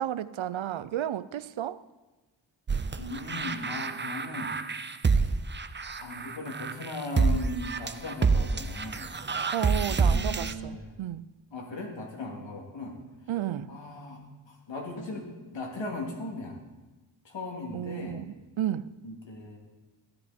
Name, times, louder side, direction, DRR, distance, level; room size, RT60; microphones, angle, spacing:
voice 1, 0.0-1.8 9.5-11.3 13.3-13.7 17.7-18.9, right 11 dB, 85° right, 0.6 m, -32 dB
sound 1, 2.7-10.5, right 4 dB, 25° right, 0.5 m, -27 dB
voice 2, 3.0-4.5 6.0-9.1 9.9-10.9 11.5-13.0 13.7-14.2 14.5-16.6 17.2-18.3 19.0-19.6, left 2 dB, 70° left, 3.0 m, -38 dB
15.0 x 13.5 x 4.4 m
wide cardioid pair, 130°, 46 cm